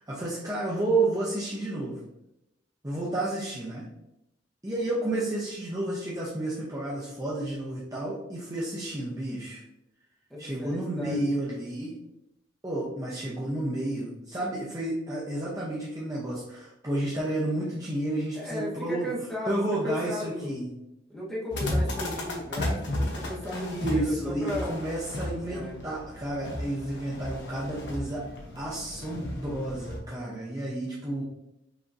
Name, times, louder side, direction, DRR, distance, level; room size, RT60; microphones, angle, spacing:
voice 1, 0.0-2.0 2.8-3.9 4.6-9.6 10.4-12.0 12.6-19.1 19.5-20.7 23.5-28.3 28.5-31.2, right 1 dB, 15° right, -6 dB, 0.7 m, -31 dB
voice 2, 10.3-11.3 18.3-20.6 21.1-24.8 25.4-25.8, left 1 dB, ahead, -7 dB, 1.2 m, -35 dB
sound 1, 21.5-30.0, left 1 dB, 60° left, 0.9 m, -34 dB
5.8 x 2.9 x 2.6 m, 0.88 s
head